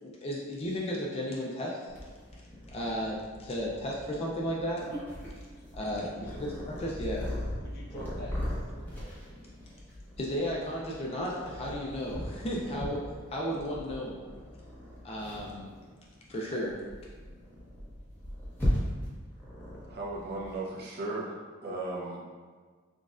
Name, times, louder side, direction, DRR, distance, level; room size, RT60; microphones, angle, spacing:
voice 1, 0.0-1.9 2.7-4.9 5.7-7.3 10.2-13.0 13.3-14.2 15.0-15.7 16.3-16.8, equal, 30° left, -3 dB, 0.4 m, -34 dB
Purr, 1.9-20.6, equal, 10° left, 0.9 m, -39 dB
voice 2, 5.5-5.9 6.2-6.4 7.6-9.4, equal, 50° left, -4 dB, 0.8 m, -48 dB
voice 3, 19.8-21.4 21.6-22.2, right 2 dB, 50° right, -3 dB, 0.7 m, -36 dB
6.1 x 2.4 x 2.4 m, 1.5 s
head